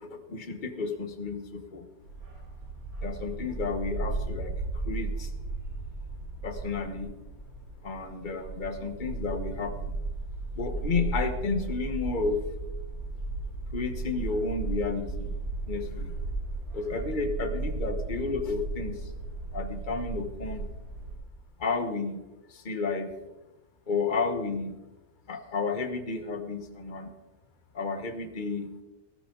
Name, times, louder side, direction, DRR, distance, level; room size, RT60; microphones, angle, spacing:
voice 1, 0.0-1.9 3.0-5.3 6.4-7.1 7.8-10.0 10.5-12.4 13.7-15.4 15.7-16.1 16.7-19.1 19.5-20.7 21.6-22.2 22.5-23.1 23.9-24.8 25.3-27.1 27.7-28.7, left 4 dB, 30° left, 7 dB, 1.2 m, -32 dB
Bark, 2.0-21.1, right 3 dB, 90° right, 5.0 m, -35 dB
17.0 x 14.5 x 3.9 m, 1.0 s
omnidirectional pair, 2.1 m